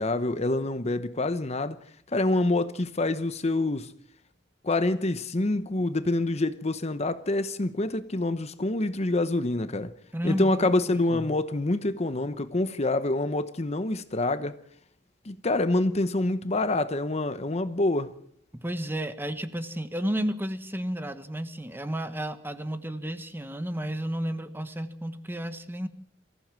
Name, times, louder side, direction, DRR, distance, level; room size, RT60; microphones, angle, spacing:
voice 1, 0.0-1.8 2.1-3.9 4.6-9.9 10.2-14.6 15.2-18.1, left 2 dB, 35° left, 0.9 m, -26 dB
voice 2, 10.1-10.6 10.9-11.3 18.5-25.9, equal, 10° right, 1.2 m, -32 dB
24.0 x 15.5 x 7.6 m
head